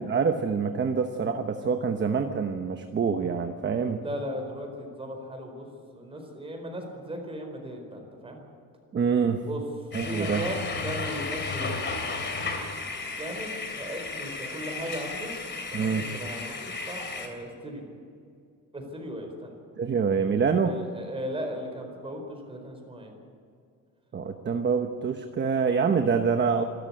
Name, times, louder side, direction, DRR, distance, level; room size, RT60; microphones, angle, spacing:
voice 1, 0.0-4.0 8.9-9.5 9.9-10.4 15.7-16.0 19.8-20.8 24.1-26.6, right 6 dB, 30° right, 6 dB, 1.0 m, -26 dB
voice 2, 4.0-5.7 5.9-8.4 9.4-9.6 10.0-12.3 13.1-15.3 15.7-17.8 18.7-19.5 20.7-23.1, equal, 15° right, 3 dB, 4.5 m, -37 dB
sound 1, 9.9-17.3, left 4 dB, 35° left, 3.0 m, -34 dB
26.0 x 13.5 x 8.7 m, 2.3 s
cardioid pair, 170°, 34 cm